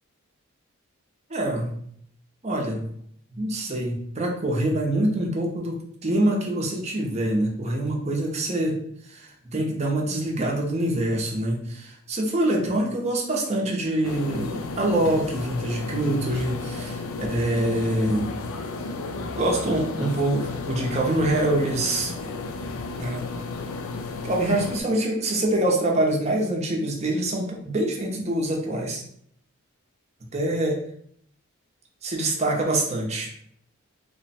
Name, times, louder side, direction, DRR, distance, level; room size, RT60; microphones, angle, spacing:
voice 1, 1.3-1.8 2.4-2.9 3.3-5.7 6.0-8.8 9.0-18.3 19.3-22.1 23.0-23.3 24.2-29.0 30.3-30.7 32.0-33.3, right 1 dB, 30° right, 0 dB, 0.7 m, -25 dB
sound 1, 14.0-24.8, left 3 dB, 75° left, 0.4 m, -33 dB
3.1 x 2.1 x 4.1 m, 0.65 s
head